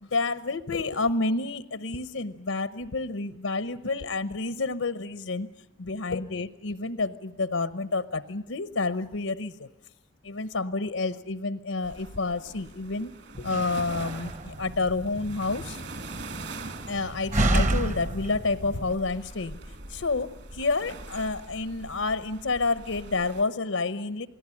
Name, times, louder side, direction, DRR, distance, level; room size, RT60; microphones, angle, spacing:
voice 1, 0.0-5.5 5.8-9.7 10.2-13.1 13.4-15.8 16.9-19.6 19.9-24.3, left 3 dB, 85° left, 13 dB, 0.9 m, -29 dB
sound 1, 11.8-23.4, right 2 dB, 55° right, 2.3 m, -43 dB
Slam, 13.3-19.0, right 1 dB, 35° right, 0.9 m, -30 dB
28.5 x 19.0 x 9.9 m, 0.87 s
head